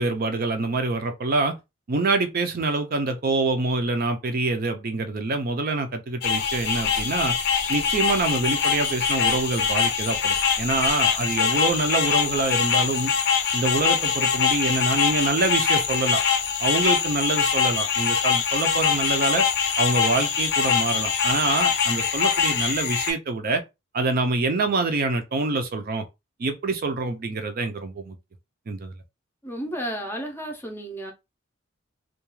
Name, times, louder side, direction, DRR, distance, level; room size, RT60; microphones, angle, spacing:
voice 1, 0.0-1.6 1.9-7.4 7.7-13.1 13.5-16.2 16.6-19.4 19.8-23.6 23.9-26.1 26.4-28.2 28.7-28.9, right 3 dB, 50° right, 0.5 m, -25 dB
sound 1, 6.2-23.1, left 7 dB, 60° left, 0.5 m, -23 dB
voice 2, 29.4-31.1, equal, 10° left, 0.5 m, -32 dB
2.3 x 2.3 x 3.0 m
head